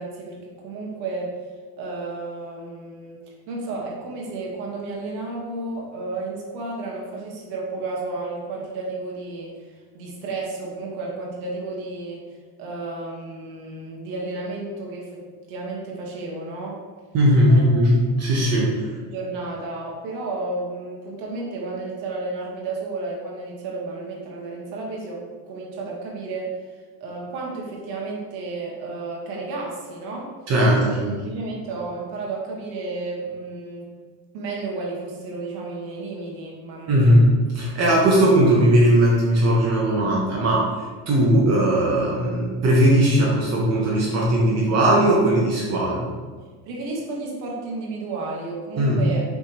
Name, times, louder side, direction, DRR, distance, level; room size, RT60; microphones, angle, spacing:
voice 1, 0.0-1.3 1.8-3.2 3.5-12.2 12.6-15.2 15.5-16.8 17.5-17.8 18.8-26.5 27.0-30.3 30.8-30.9 31.2-33.9 34.3-37.2 46.6-49.2, right 3 dB, 80° right, -2 dB, 1.4 m, -32 dB
voice 2, 17.1-18.7 30.5-31.2 36.9-46.1 48.8-49.0, right 1 dB, 35° right, -4 dB, 0.9 m, -18 dB
5.3 x 3.4 x 3.0 m, 1.5 s
cardioid pair, 160°, 43 cm